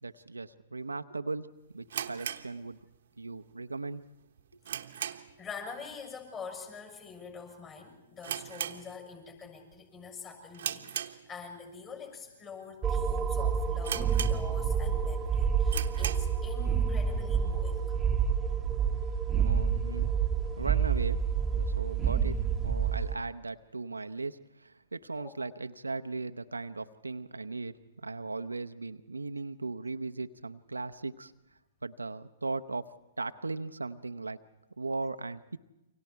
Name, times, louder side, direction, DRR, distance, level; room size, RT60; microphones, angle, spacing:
voice 1, 0.0-2.8 3.2-4.1 19.4-20.1 20.6-31.3 31.8-32.9 33.2-34.4 34.8-35.6, right 3 dB, 90° right, 10 dB, 0.7 m, -38 dB
sound 1, 1.9-3.2 3.5-3.6 4.1-5.5 5.8-6.1 6.3-6.4 7.1-7.4 7.7-7.8 8.2-9.4 9.7-10.0 10.5-11.7 12.2-12.3 12.9-13.0 13.3-13.4 13.8-14.8 15.2-15.3 15.6-16.4, right 9 dB, 65° right, 1.0 m, -38 dB
voice 2, 5.1-17.8 25.2-25.3, left 5 dB, 25° left, 3 dB, 6.9 m, -45 dB
sound 2, 12.8-23.1, right 7 dB, 15° right, 1.2 m, -28 dB
29.0 x 24.5 x 4.6 m, 0.96 s
figure-of-eight pair, 120°, 0 cm